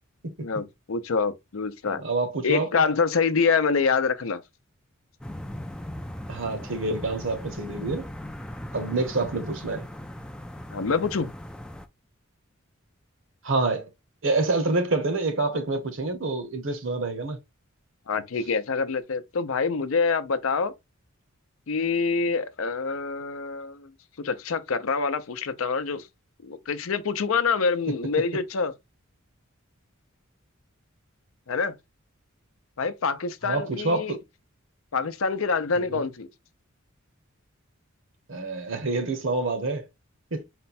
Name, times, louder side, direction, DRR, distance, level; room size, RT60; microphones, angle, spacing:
voice 1, 0.4-2.0 2.4-4.4 10.7-11.3 18.1-20.7 21.7-23.9 24.2-26.1 26.4-28.7 31.5-31.8 32.8-34.2 34.9-36.3, left 5 dB, 70° left, 0.6 m, -26 dB
voice 2, 1.9-2.7 6.3-8.1 8.7-9.8 13.4-13.9 14.2-17.4 33.4-34.2 35.8-36.0 38.3-39.8 40.3-40.4, right 3 dB, 65° right, 1.0 m, -27 dB
sound 1, 5.2-11.9, left 1 dB, 5° left, 0.3 m, -38 dB
4.3 x 2.2 x 4.1 m
head